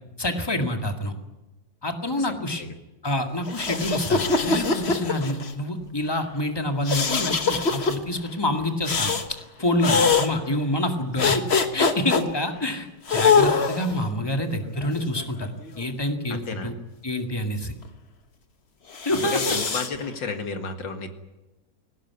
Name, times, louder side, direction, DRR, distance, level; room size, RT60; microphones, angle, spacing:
voice 1, 0.2-1.1 1.8-2.6 3.0-9.1 9.6-11.4 11.7-15.5 15.8-16.7 17.0-17.7 19.1-19.6, left 1 dB, 15° left, 5 dB, 2.0 m, -27 dB
sound 1, 3.5-5.5 6.9-8.0 8.9-9.3 9.8-10.3 11.2-12.2 13.1-14.0 14.8-15.9 18.9-19.9, left 5 dB, 40° left, 1.5 m, -23 dB
voice 2, 16.3-16.7 19.1-21.1, left 4 dB, 90° left, 6 dB, 2.7 m, -32 dB
20.0 x 17.5 x 9.6 m, 1.0 s
omnidirectional pair, 1.9 m